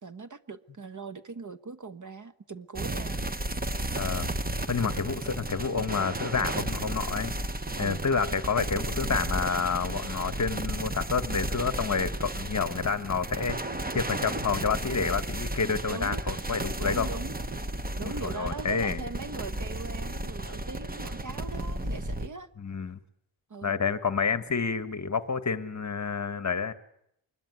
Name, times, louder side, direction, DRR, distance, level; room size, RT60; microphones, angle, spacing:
voice 1, 0.0-3.2 4.8-5.0 7.8-8.0 15.9-16.2 16.8-17.3 18.0-22.5 23.5-23.8, right 4 dB, 35° right, 12 dB, 1.3 m, -40 dB
sound 1, 2.8-22.3, right 1 dB, 20° right, 1.1 m, -33 dB
voice 2, 3.9-4.3 4.7-7.3 7.8-13.6 13.9-17.1 18.0-19.0 22.6-23.0 23.6-26.7, left 5 dB, 35° left, 13 dB, 1.4 m, -29 dB
25.0 x 21.5 x 9.6 m, 0.74 s
wide cardioid pair, 170°, 49 cm